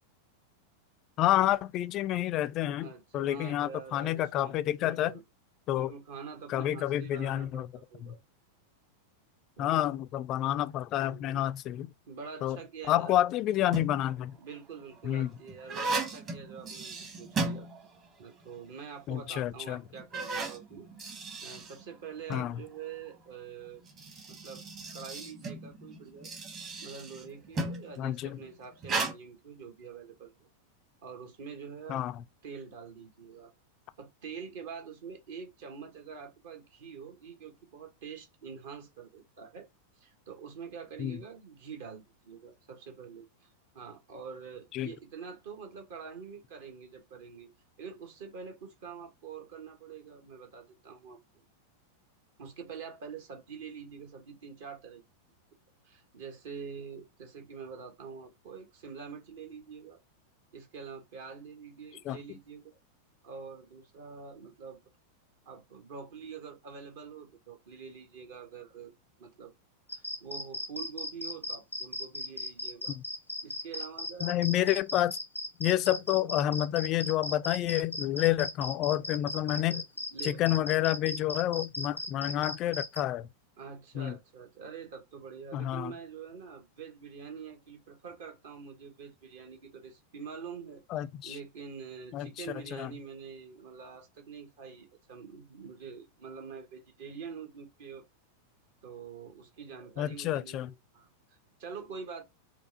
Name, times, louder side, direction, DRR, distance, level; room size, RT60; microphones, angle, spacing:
voice 1, 1.2-5.1 5.7-5.9 6.5-7.7 8.0-8.2 9.6-11.9 12.4-12.6 12.9-14.4 15.0-15.3 19.1-19.8 22.3-22.6 28.0-28.4 31.9-32.2 41.0-41.2 44.7-44.9 62.1-62.2 73.0-73.1 74.2-75.1 75.6-79.8 80.2-83.3 83.9-84.2 85.5-85.9 90.9-91.4 92.1-92.5 92.7-92.9 100.0-100.7, left 13 dB, 35° left, 0.3 m, -29 dB
voice 2, 2.8-4.5 4.8-5.2 5.7-8.2 9.6-9.9 11.0-11.4 12.1-13.2 14.4-17.7 18.2-23.8 24.3-24.6 24.9-26.3 26.8-30.5 31.0-32.0 32.4-33.5 34.0-39.7 40.0-47.5 47.8-51.2 52.4-55.0 55.8-60.0 60.5-62.8 63.2-64.8 65.4-68.9 69.2-69.5 69.9-73.0 73.4-74.7 75.8-76.0 79.5-79.8 80.1-80.4 83.6-90.8 91.2-98.0 98.8-102.2, right 6 dB, 55° right, 1.0 m, -45 dB
sound 1, 13.5-14.1 14.8-18.2 18.5-18.6 19.3-19.4 19.9-22.5 23.7-27.9 28.8-29.1, right 3 dB, 30° right, 1.1 m, -36 dB
sound 2, 69.9-83.0, left 2 dB, 85° left, 0.6 m, -37 dB
4.4 x 2.3 x 2.7 m
figure-of-eight pair, 90°, 0 cm